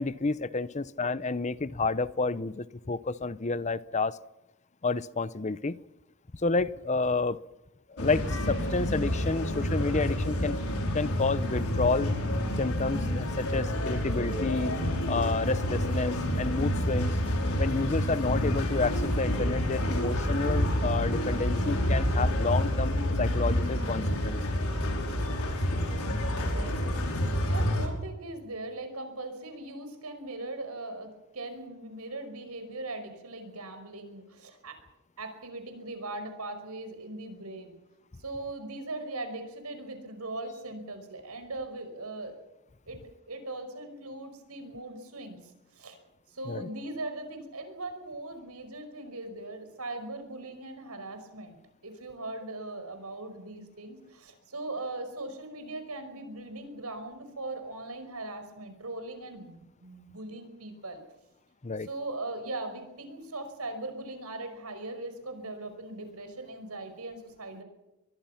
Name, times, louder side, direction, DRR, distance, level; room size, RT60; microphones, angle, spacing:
voice 1, 0.0-4.2 4.8-5.8 6.3-7.4 7.9-10.6 10.9-12.1 12.6-14.7 15.1-17.2 17.6-24.4 46.5-46.7 61.6-61.9, left 3 dB, 30° left, 17 dB, 0.7 m, -30 dB
sound 1, 8.0-27.9, equal, 75° left, 5.2 m, -28 dB
voice 2, 21.1-21.7 26.5-26.8 27.1-34.8 35.2-37.7 38.2-42.4 42.9-46.0 46.3-61.0 61.8-67.6, right 2 dB, 90° right, 8 dB, 5.3 m, -40 dB
23.5 x 22.5 x 5.8 m, 0.97 s
head